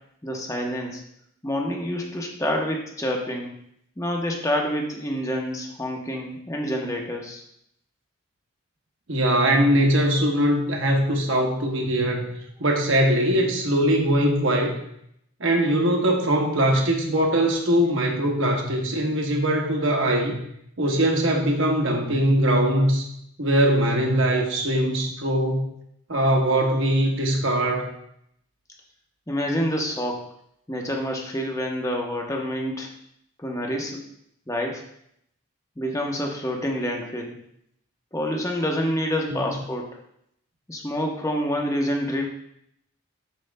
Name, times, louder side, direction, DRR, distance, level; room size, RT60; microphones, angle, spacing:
voice 1, 0.2-1.0 1.4-3.5 4.0-7.4 29.3-30.2 30.7-32.9 33.4-34.0 34.5-34.8 35.8-37.4 38.1-39.9 40.7-42.3, equal, 15° left, 0 dB, 0.8 m, -27 dB
voice 2, 9.1-12.3 12.6-14.8 15.4-20.4 20.8-23.0 23.4-25.7 26.1-27.9 39.3-39.4, right 1 dB, 60° right, 1 dB, 1.1 m, -21 dB
11.5 x 4.5 x 2.2 m, 0.73 s
head